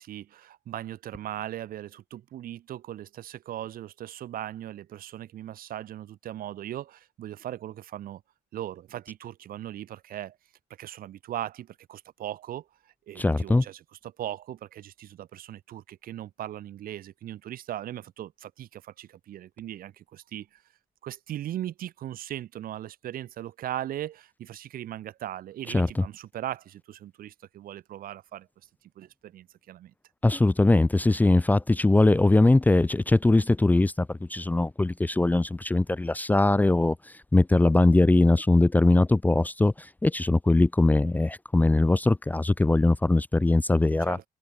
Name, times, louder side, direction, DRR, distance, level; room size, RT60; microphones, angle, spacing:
voice 1, 0.0-8.2 8.5-10.4 10.8-20.6 21.0-28.5 29.0-29.9 44.0-44.2, right 12 dB, 60° right, 1.1 m, -38 dB
voice 2, 13.2-13.6 25.7-26.0 30.2-37.0 37.3-44.2, left 2 dB, 10° left, 0.6 m, -21 dB
cardioid pair, 110°, 17 cm